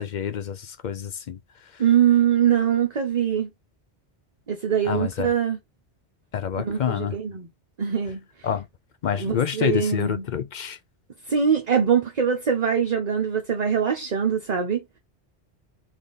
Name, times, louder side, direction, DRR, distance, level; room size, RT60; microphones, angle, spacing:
voice 1, 0.0-1.4 4.9-5.3 6.3-7.1 8.4-8.7 9.0-10.8, left 8 dB, 60° left, 0.5 m, -27 dB
voice 2, 1.8-3.5 4.5-5.6 6.6-7.5 7.8-8.2 9.1-10.3 11.3-14.8, right 8 dB, 40° right, 0.8 m, -23 dB
3.6 x 3.3 x 3.9 m
omnidirectional pair, 1.1 m